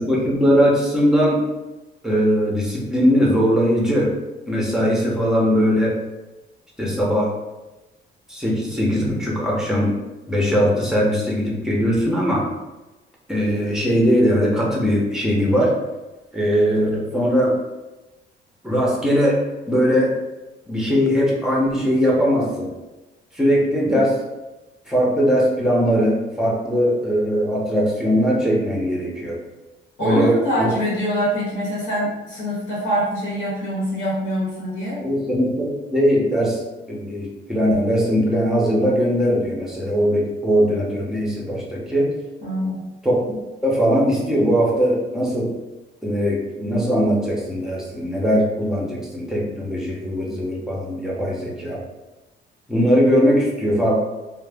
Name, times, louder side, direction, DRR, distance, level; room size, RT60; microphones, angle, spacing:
voice 1, 0.0-1.5 2.0-4.2 4.5-6.0 6.8-7.3 8.3-10.0 10.3-12.4 13.3-15.8 16.3-17.6 18.6-19.4 19.7-20.2 20.7-22.7 23.3-24.2 24.9-29.4 30.0-30.7 35.0-36.6 36.9-42.1 43.0-43.1 43.6-45.5 46.0-51.8 52.7-54.0, equal, 5° right, -4 dB, 0.8 m, -20 dB
voice 2, 30.0-35.0 42.4-42.8, equal, 65° left, -7 dB, 1.2 m, -24 dB
2.3 x 2.2 x 3.4 m, 1.1 s
cardioid pair, 90°, 20 cm